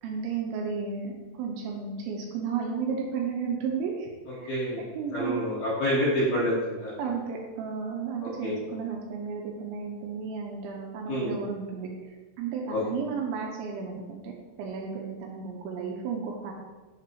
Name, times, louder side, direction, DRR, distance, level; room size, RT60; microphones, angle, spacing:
voice 1, 0.0-4.5 5.0-5.4 7.0-14.3 14.6-16.5, right 6 dB, 80° right, 0 dB, 3.0 m, -33 dB
voice 2, 4.5-6.9 8.4-8.6 11.1-11.3 12.7-12.8, equal, 60° left, -10 dB, 2.8 m, -27 dB
7.6 x 7.5 x 3.0 m, 1.2 s
omnidirectional pair, 5.8 m